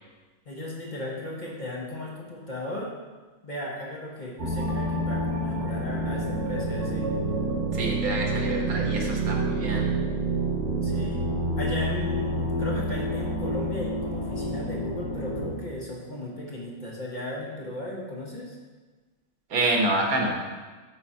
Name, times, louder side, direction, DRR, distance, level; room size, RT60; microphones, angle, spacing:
voice 1, 0.4-2.9 3.4-7.1 10.8-11.3 11.6-18.6, left 1 dB, 35° left, -3 dB, 1.2 m, -36 dB
sound 1, 4.4-15.5, right 1 dB, 55° right, 1.6 m, -28 dB
voice 2, 7.7-9.8 19.5-20.3, right 2 dB, 85° right, 0 dB, 1.6 m, -27 dB
8.9 x 4.3 x 4.3 m, 1.3 s
omnidirectional pair, 1.5 m